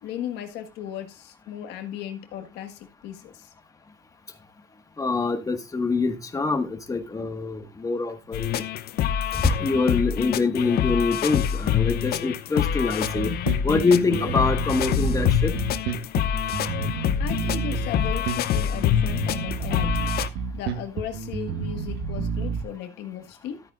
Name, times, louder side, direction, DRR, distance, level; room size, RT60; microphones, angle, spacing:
voice 1, 0.0-3.5 17.2-23.6, left 10 dB, 85° left, 1.6 m, -36 dB
voice 2, 5.0-8.6 9.3-13.3 13.6-15.5, left 4 dB, 20° left, 1.6 m, -25 dB
Rocky Loop, 8.3-20.3, left 10 dB, 65° left, 0.7 m, -26 dB
Bass guitar, 13.0-22.6, right 6 dB, 80° right, 1.4 m, -30 dB
13.0 x 8.9 x 2.4 m
cardioid pair, 110°, 17 cm